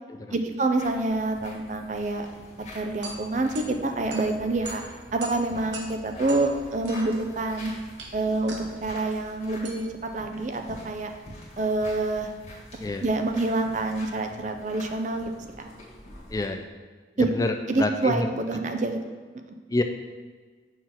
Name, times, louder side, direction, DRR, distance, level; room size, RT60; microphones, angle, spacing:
voice 1, 0.3-2.3 2.7-4.8 5.1-7.7 8.1-11.1 11.6-12.3 13.0-15.3 15.6-15.7 17.2-17.3 17.7-19.0, right 2 dB, 40° right, 5 dB, 0.6 m, -27 dB
sound 1, 0.7-16.5, left 1 dB, 35° left, 2.0 m, -46 dB
sound 2, 2.7-11.7, right 3 dB, 90° right, 1.0 m, -44 dB
voice 2, 16.3-16.7 17.2-18.3 19.7-19.8, left 2 dB, 20° left, 6 dB, 0.3 m, -27 dB
6.2 x 3.9 x 6.0 m, 1.5 s
head